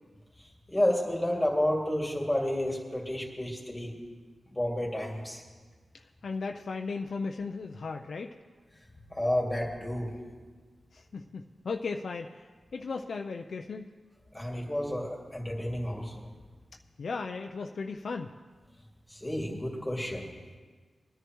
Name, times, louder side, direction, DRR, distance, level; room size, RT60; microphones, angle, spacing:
voice 1, 0.7-3.9 4.5-5.4 9.1-10.1 14.3-16.3 19.1-20.2, left 1 dB, 10° left, -2 dB, 2.4 m, -30 dB
voice 2, 5.9-8.4 10.9-12.5 12.7-13.9 17.0-18.3, left 4 dB, 75° left, 4 dB, 0.5 m, -36 dB
21.0 x 10.0 x 3.1 m, 1.5 s
cardioid pair, 65°, 0 cm